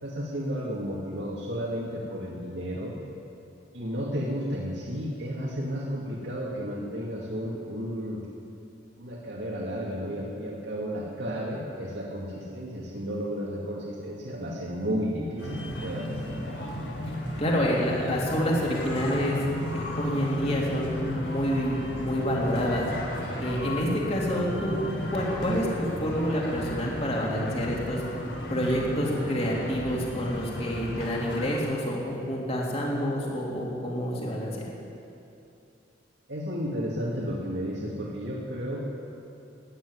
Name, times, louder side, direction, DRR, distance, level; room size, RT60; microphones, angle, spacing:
voice 1, 0.0-3.0 3.7-8.2 9.0-16.6 36.3-38.8, equal, 75° right, -4 dB, 2.2 m, -33 dB
sound 1, 15.4-31.6, equal, 80° left, 3.5 m, -34 dB
voice 2, 17.4-19.4 19.7-22.9 23.4-24.8 25.1-28.0 28.5-34.7, equal, 35° left, -3 dB, 3.0 m, -28 dB
15.0 x 10.0 x 9.6 m, 2.6 s
head